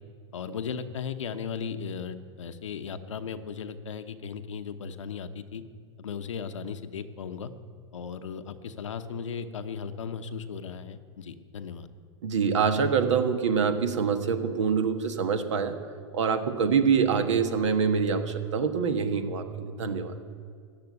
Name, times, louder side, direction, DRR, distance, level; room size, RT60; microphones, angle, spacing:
voice 1, 0.3-5.6 6.0-7.5 7.9-11.9, left 6 dB, 80° left, 9 dB, 0.9 m, -36 dB
voice 2, 12.2-15.7 16.1-20.1, right 6 dB, 70° right, 8 dB, 1.3 m, -25 dB
14.0 x 7.7 x 9.4 m, 2.1 s
hypercardioid pair, 100°, 16 cm